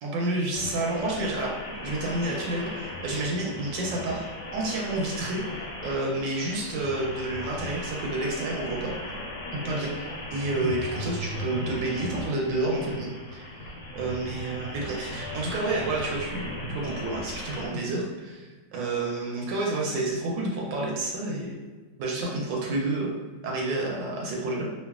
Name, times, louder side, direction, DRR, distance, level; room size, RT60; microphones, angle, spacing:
voice 1, 0.0-4.3 4.5-9.2 9.5-13.6 13.9-21.6 22.0-23.1 23.4-24.7, right 2 dB, 80° right, -2 dB, 1.2 m, -30 dB
sound 1, 0.5-17.7, left 1 dB, 70° left, 1.0 m, -37 dB
3.0 x 2.2 x 2.3 m, 1.4 s
omnidirectional pair, 2.0 m